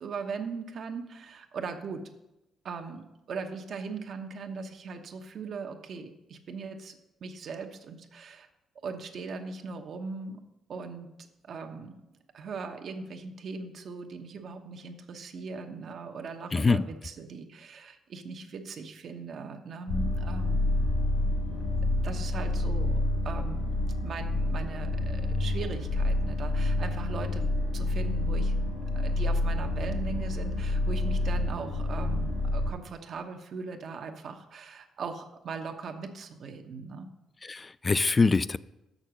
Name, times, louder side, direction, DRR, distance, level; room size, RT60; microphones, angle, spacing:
voice 1, 0.0-2.0 2.6-8.5 8.8-10.4 10.7-11.1 11.4-11.9 12.3-20.6 22.0-23.0 23.2-23.8 24.0-28.6 28.9-37.1, right 4 dB, 60° right, 5 dB, 1.0 m, -39 dB
voice 2, 16.5-16.8 37.4-38.6, left 4 dB, 25° left, 18 dB, 0.3 m, -24 dB
sound 1, 19.9-32.7, left 2 dB, 85° left, 3.7 m, -28 dB
6.6 x 6.4 x 6.3 m, 0.96 s
cardioid pair, 90°, 0 cm